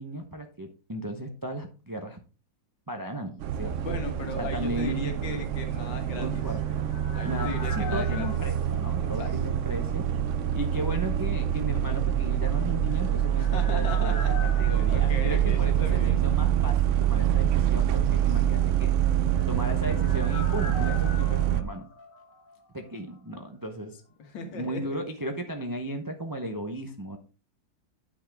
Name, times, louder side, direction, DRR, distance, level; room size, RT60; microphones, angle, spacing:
voice 1, 0.0-2.2 2.9-4.0 4.4-5.1 6.1-6.9 7.2-10.1 10.5-18.9 19.5-21.9 22.7-24.0 24.4-27.2, right 1 dB, 25° right, 4 dB, 0.4 m, -35 dB
sound 1, 3.4-21.6, right 10 dB, 90° right, 0.6 m, -25 dB
voice 2, 3.8-6.4 7.1-8.3 9.0-9.4 13.4-16.2 24.2-24.8, left 4 dB, 80° left, 5 dB, 2.2 m, -37 dB
sound 2, 6.1-9.9 10.2-10.3 12.7-16.4 16.7-16.8 19.0-22.9 23.1-23.2, left 4 dB, 50° left, 1.6 m, -42 dB
9.5 x 6.2 x 3.5 m, 0.34 s
omnidirectional pair, 2.0 m